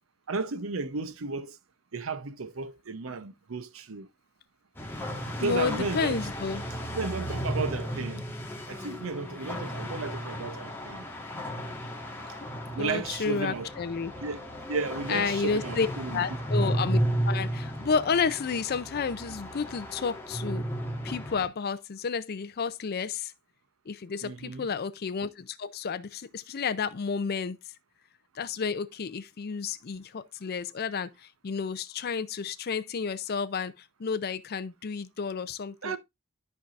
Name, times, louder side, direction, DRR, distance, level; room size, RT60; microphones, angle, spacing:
voice 1, 0.3-1.5 1.9-4.1 5.3-6.2 6.9-8.2 8.7-11.0 12.7-13.7 14.2-16.3 24.2-24.7 35.8-36.0, right 4 dB, 75° right, 0.8 m, -34 dB
sound 1, 4.8-21.5, equal, 10° left, 1.5 m, -34 dB
voice 2, 5.4-6.6 12.8-14.1 15.1-17.0 17.2-20.6 21.0-23.3 23.9-27.6 28.3-36.0, left 5 dB, 50° left, 0.5 m, -31 dB
13.0 x 4.7 x 2.5 m
head